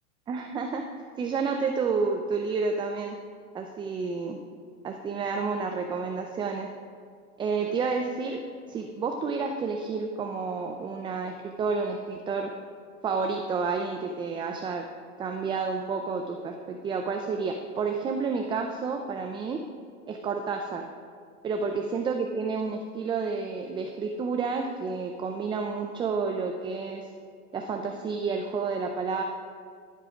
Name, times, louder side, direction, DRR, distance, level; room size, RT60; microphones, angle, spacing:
voice 1, 0.3-3.2 3.5-4.4 4.8-6.7 7.4-8.4 8.7-12.5 13.0-14.9 15.2-19.6 20.1-20.9 21.4-27.1 27.5-29.2, right 4 dB, 10° right, 4 dB, 0.4 m, -30 dB
14.5 x 7.7 x 5.1 m, 2.3 s
hypercardioid pair, 120°, 42 cm